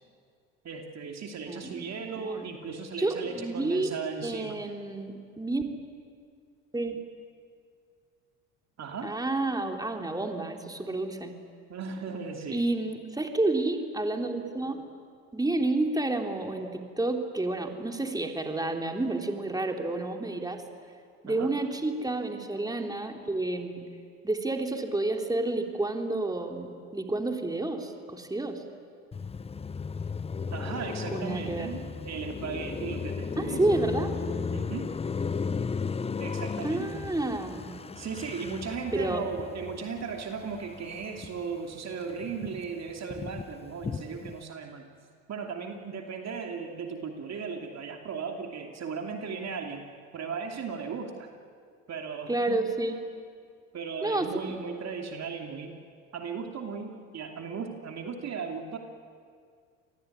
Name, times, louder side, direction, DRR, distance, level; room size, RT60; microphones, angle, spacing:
voice 1, 0.6-4.6 8.8-9.1 11.7-12.6 21.2-21.5 30.5-33.8 34.5-34.9 36.2-37.0 38.0-44.8 45.3-49.8 50.1-51.3 51.9-52.7 53.7-55.8 56.1-58.8, right 5 dB, 45° right, 3 dB, 2.9 m, -37 dB
voice 2, 1.5-2.5 3.0-3.9 4.2-5.6 6.7-7.0 9.0-11.3 12.5-14.9 15.3-20.6 21.2-23.8 24.2-28.6 31.1-31.7 33.4-34.2 36.6-37.8 38.9-39.2 52.3-53.0 54.0-54.3, right 2 dB, 10° right, 3 dB, 3.5 m, -30 dB
Car passing by, 29.1-41.6 41.9-44.4, left 5 dB, 15° left, 0.6 m, -35 dB
28.0 x 20.5 x 9.6 m, 2.2 s
hypercardioid pair, 75°, 38 cm